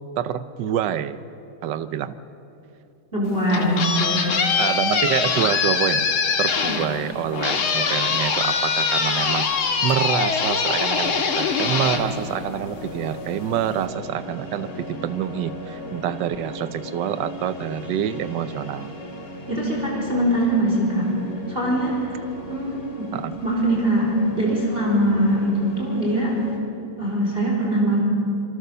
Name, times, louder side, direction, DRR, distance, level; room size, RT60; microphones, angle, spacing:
voice 1, 0.2-1.2 1.6-2.2 4.6-6.1 6.4-9.5 9.8-18.9 23.1-23.3, right 9 dB, 65° right, 13 dB, 1.4 m, -26 dB
voice 2, 3.1-4.5 19.5-21.1 21.5-22.2 22.5-23.1 23.4-26.4 27.0-28.0, right 1 dB, 25° right, -2 dB, 4.5 m, -22 dB
sound 1, 3.2-12.9, left 5 dB, 90° left, 2.6 m, -23 dB
sound 2, 11.6-26.6, left 1 dB, 55° left, 4.1 m, -37 dB
27.0 x 23.5 x 6.8 m, 2.8 s
omnidirectional pair, 2.3 m